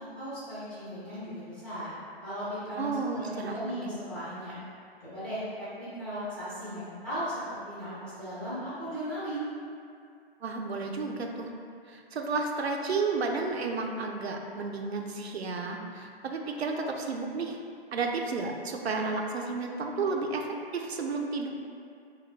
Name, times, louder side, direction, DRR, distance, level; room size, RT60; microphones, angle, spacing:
voice 1, 0.0-1.9 2.2-4.6 5.0-9.5, equal, 5° left, -12 dB, 0.4 m, -37 dB
voice 2, 2.8-3.9 10.4-11.5 11.9-17.6 17.9-20.5 20.7-21.5, right 4 dB, 80° right, 2 dB, 0.5 m, -32 dB
3.0 x 2.1 x 4.2 m, 2.3 s
figure-of-eight pair, 130°, 31 cm